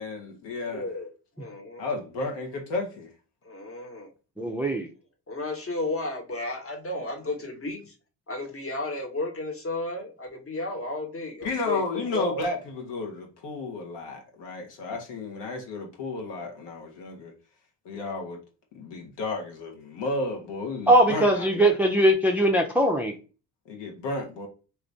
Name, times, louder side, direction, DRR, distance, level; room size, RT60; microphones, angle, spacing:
voice 1, 0.0-0.9 1.8-3.1 11.4-17.3 17.8-18.4 18.7-21.8 23.7-24.5, left 3 dB, 60° left, 1.4 m, -32 dB
voice 2, 0.7-1.9 3.4-4.1 5.3-7.9 8.3-12.5, left 2 dB, 30° left, 1.4 m, -33 dB
voice 3, 4.4-4.9 20.9-23.1, right 1 dB, 5° right, 0.5 m, -21 dB
3.0 x 2.5 x 3.3 m
hypercardioid pair, 60°, 47 cm